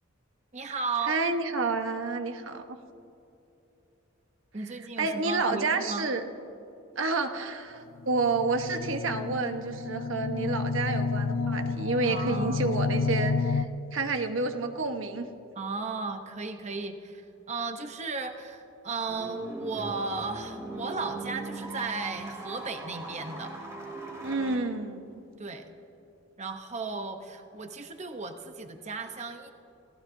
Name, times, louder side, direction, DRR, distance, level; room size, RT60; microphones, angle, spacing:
voice 1, 0.5-1.2 4.5-6.1 12.0-12.7 15.6-23.5 25.4-25.7 26.4-29.5, right 4 dB, 35° right, 6 dB, 0.8 m, -35 dB
voice 2, 1.1-2.6 5.0-6.2 7.0-13.7 13.9-15.3 24.2-25.2, right 3 dB, 70° right, 6 dB, 1.1 m, -29 dB
sound 1, 8.0-13.6, left 4 dB, 70° left, 0.5 m, -30 dB
sound 2, 19.1-24.6, right 2 dB, 15° right, 2.0 m, -40 dB
28.0 x 15.5 x 2.7 m, 2.8 s
head